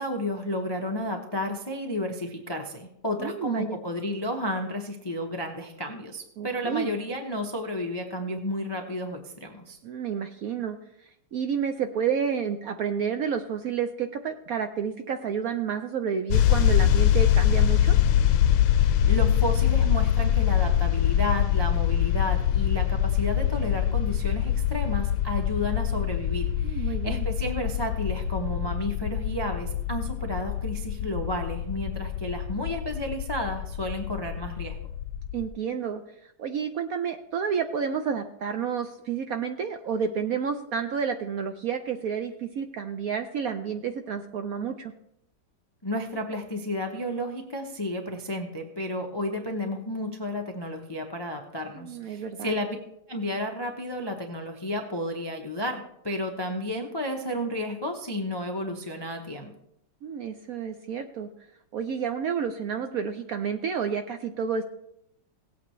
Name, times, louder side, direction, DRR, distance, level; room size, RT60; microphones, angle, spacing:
voice 1, 0.0-9.8 18.7-34.8 45.8-52.8 53.1-59.5, left 1 dB, 30° left, 3 dB, 0.4 m, -32 dB
voice 2, 3.2-3.8 6.4-6.9 9.8-18.0 26.6-27.3 35.3-44.9 51.7-52.6 60.0-61.3 61.7-64.6, right 7 dB, 70° right, 7 dB, 0.8 m, -30 dB
sound 1, 16.3-35.5, left 10 dB, 85° left, 1.3 m, -24 dB
17.5 x 8.3 x 3.1 m, 0.78 s
omnidirectional pair, 2.0 m